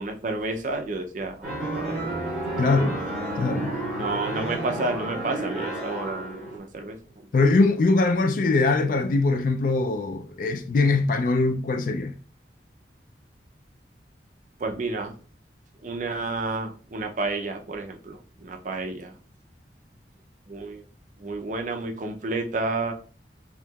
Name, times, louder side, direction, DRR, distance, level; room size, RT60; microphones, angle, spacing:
voice 1, 0.0-2.6 3.9-7.3 14.6-15.1 15.8-19.1 20.5-20.8 21.2-22.9, right 3 dB, 45° right, 0.5 m, -31 dB
sound 1, 1.4-6.6, right 2 dB, 5° right, 1.5 m, -31 dB
voice 2, 2.6-3.0 3.4-3.7 7.3-12.1, left 3 dB, 50° left, 0.3 m, -22 dB
4.4 x 2.8 x 2.3 m
head